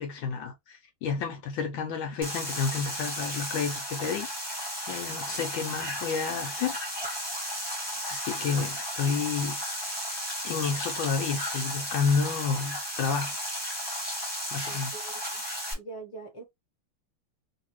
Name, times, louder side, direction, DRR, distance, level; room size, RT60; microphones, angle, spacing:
voice 1, 0.0-4.3 4.9-6.8 8.1-9.6 10.4-13.4 14.5-14.9, left 5 dB, 75° left, 1.2 m, -30 dB
sound 1, 2.2-15.7, equal, 15° right, 1.1 m, -34 dB
voice 2, 14.6-16.4, right 3 dB, 20° left, 0.8 m, -44 dB
3.2 x 2.8 x 3.0 m
omnidirectional pair, 2.4 m